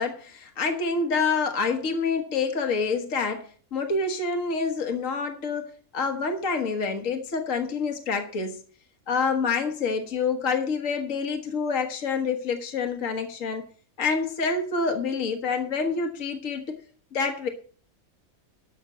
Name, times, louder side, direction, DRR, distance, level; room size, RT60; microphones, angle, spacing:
voice 1, 0.0-8.6 9.1-13.6 14.0-16.8 17.1-17.5, left 4 dB, 65° left, 6 dB, 1.7 m, -27 dB
13.0 x 6.1 x 7.3 m, 0.44 s
omnidirectional pair, 1.5 m